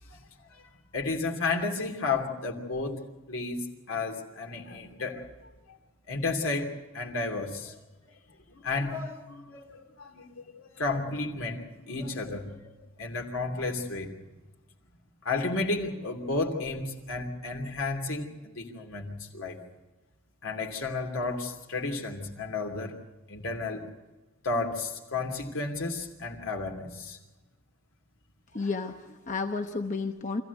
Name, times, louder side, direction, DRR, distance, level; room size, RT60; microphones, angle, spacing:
voice 1, 0.5-3.0 3.3-5.3 5.7-5.8 6.1-7.7 8.5-10.3 10.6-14.1 15.2-19.6 20.4-22.9 23.3-23.8 24.4-27.2 28.6-28.7, left 3 dB, 75° left, 2 dB, 2.8 m, -32 dB
voice 2, 28.5-30.4, left 4 dB, 35° left, 5 dB, 0.9 m, -32 dB
25.5 x 15.5 x 8.2 m, 1.2 s
head